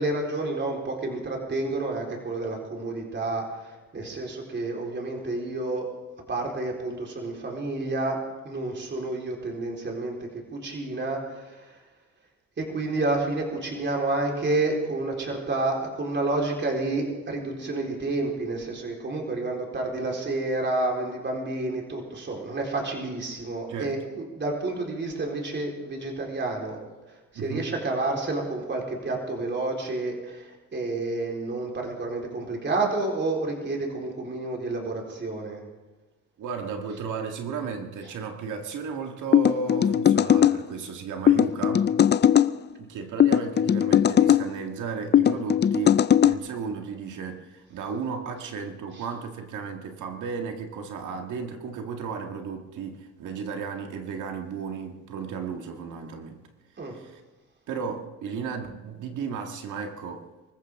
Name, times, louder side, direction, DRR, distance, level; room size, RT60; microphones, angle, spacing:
voice 1, 0.0-5.9 6.3-8.2 8.4-10.2 10.5-11.8 12.6-26.8 27.3-35.6 38.0-38.1 48.9-49.1 56.8-56.9, right 2 dB, 35° right, -1 dB, 4.2 m, -29 dB
voice 2, 27.3-27.7 36.4-41.9 42.8-56.4 56.9-57.2 57.7-60.2, right 5 dB, 80° right, 4 dB, 1.9 m, -34 dB
sound 1, 39.3-40.6 41.3-42.5 43.2-44.4 45.1-46.3, left 9 dB, 35° left, 0.5 m, -19 dB
24.0 x 14.5 x 3.7 m, 1.2 s
cardioid pair, 90°, 30 cm